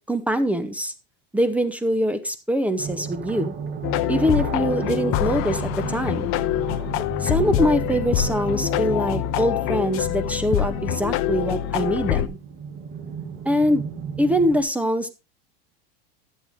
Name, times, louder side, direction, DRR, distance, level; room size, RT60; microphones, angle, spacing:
voice 1, 0.1-0.9 1.3-3.5 4.1-6.3 7.2-12.4 13.4-13.8 14.2-15.1, equal, 5° right, 9 dB, 0.8 m, -23 dB
sound 1, 2.8-14.6, right 6 dB, 35° right, 2.2 m, -34 dB
sound 2, 3.8-12.3, left 13 dB, 45° left, 0.8 m, -25 dB
13.0 x 8.0 x 3.5 m, 0.28 s
supercardioid pair, 135°, 30 cm